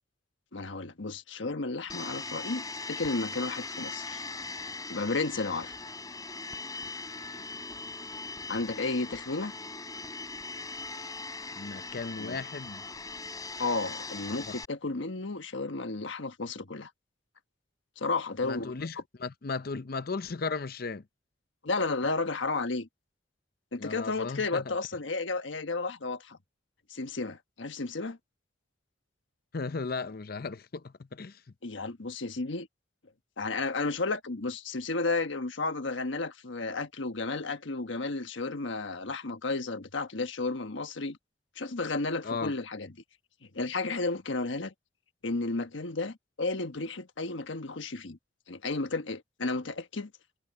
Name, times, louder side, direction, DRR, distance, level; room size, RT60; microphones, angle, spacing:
voice 1, 0.5-4.2 4.9-5.8 8.5-9.5 12.2-12.4 13.6-16.9 18.0-18.7 21.6-22.9 23.7-26.4 26.9-28.2 31.6-32.7 33.4-41.2 41.6-42.9 43.5-44.7 45.2-48.2 48.5-50.1, left 3 dB, 75° left, 1.3 m, -33 dB
Domestic sounds home sounds, 1.9-14.6, left 3 dB, 20° left, 3.6 m, -40 dB
voice 2, 11.6-12.9 14.4-14.6 18.4-21.0 23.8-24.7 29.5-31.4 42.2-42.5, left 4 dB, 50° left, 0.6 m, -36 dB
head